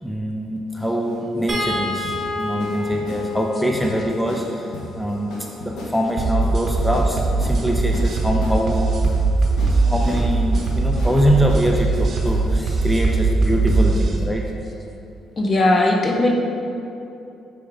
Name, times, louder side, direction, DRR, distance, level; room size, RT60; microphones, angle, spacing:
voice 1, 0.0-5.3 5.6-8.9 9.9-14.5, equal, 5° left, 0 dB, 0.6 m, -23 dB
sound 1, 0.7-12.7, left 2 dB, 70° left, 1.0 m, -36 dB
sound 2, 1.5-7.8 9.3-9.5 9.9-10.0, left 2 dB, 35° right, 1.4 m, -31 dB
sound 3, 6.2-14.2, right 3 dB, 55° right, 0.9 m, -20 dB
voice 2, 15.4-16.3, left 2 dB, 40° left, 1 dB, 0.9 m, -18 dB
6.3 x 4.5 x 3.6 m, 2.7 s
supercardioid pair, 60°, 0 cm